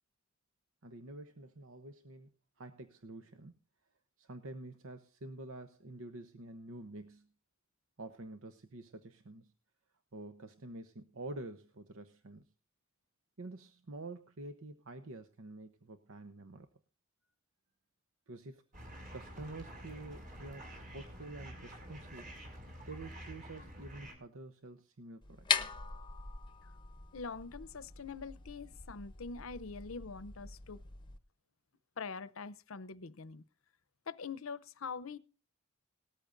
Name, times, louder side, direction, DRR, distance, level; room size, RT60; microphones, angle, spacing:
voice 1, 0.8-2.3 2.6-3.5 4.2-7.3 8.0-9.5 10.1-12.5 13.4-16.7 18.3-18.6 19.1-20.7 20.9-22.3 22.8-25.7, right 2 dB, 75° right, 0.9 m, -48 dB
sound 1, 18.7-24.2, equal, 40° right, 6.3 m, -49 dB
sound 2, 25.2-31.2, left 6 dB, 25° left, 0.8 m, -40 dB
voice 2, 27.1-30.8 32.0-33.4 34.1-35.2, left 5 dB, 80° left, 0.7 m, -44 dB
19.0 x 13.5 x 2.6 m
head